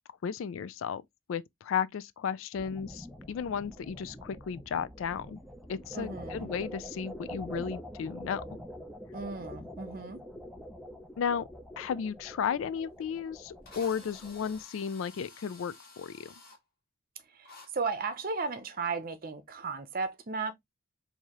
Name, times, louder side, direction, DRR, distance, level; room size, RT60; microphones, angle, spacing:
voice 1, 0.2-1.0 1.3-5.4 5.7-8.4 11.2-11.5 11.8-16.3, left 7 dB, 65° left, 0.3 m, -34 dB
sound 1, 2.5-14.6, equal, ahead, 0.5 m, -45 dB
voice 2, 5.9-6.5 9.1-10.2 17.3-20.5, right 4 dB, 45° right, 0.7 m, -35 dB
Drill, 13.0-13.1 13.7-16.6 17.5-17.7, left 3 dB, 45° left, 1.9 m, -52 dB
4.7 x 2.7 x 2.9 m
head